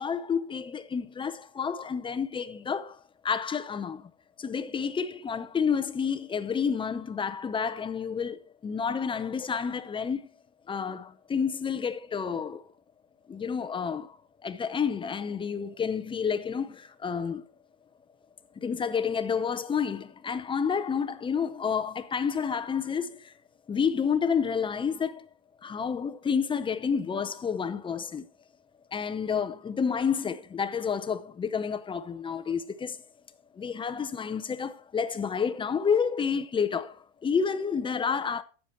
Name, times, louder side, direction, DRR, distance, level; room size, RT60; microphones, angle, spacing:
voice 1, 0.0-3.0 3.2-4.1 4.4-10.2 10.7-12.6 13.3-14.2 14.4-17.4 18.6-23.3 23.7-25.3 25.6-28.3 28.9-33.0 33.5-38.4, left 6 dB, 15° left, 0.5 m, -30 dB
9.9 x 7.1 x 4.3 m
supercardioid pair, 130°, 39 cm